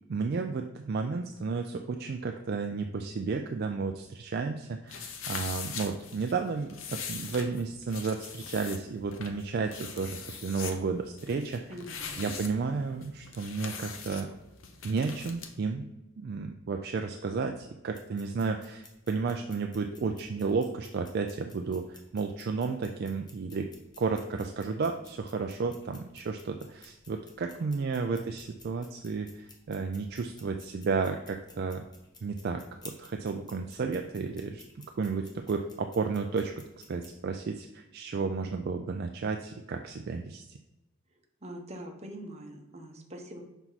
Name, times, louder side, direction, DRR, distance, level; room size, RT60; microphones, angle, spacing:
voice 1, 0.1-11.7 12.2-14.3 14.8-15.9 16.2-23.7 24.0-31.8 32.2-34.6 35.0-36.5 36.9-40.6, right 4 dB, 50° right, 5 dB, 0.4 m, -32 dB
sound 1, 4.9-15.5, left 6 dB, 80° left, 0.8 m, -42 dB
voice 2, 11.7-12.3 27.5-27.8 41.4-43.4, right 1 dB, 35° right, 2 dB, 1.0 m, -44 dB
sound 2, 17.9-37.1, left 3 dB, 20° left, 1.0 m, -56 dB
5.9 x 4.5 x 4.0 m, 0.98 s
head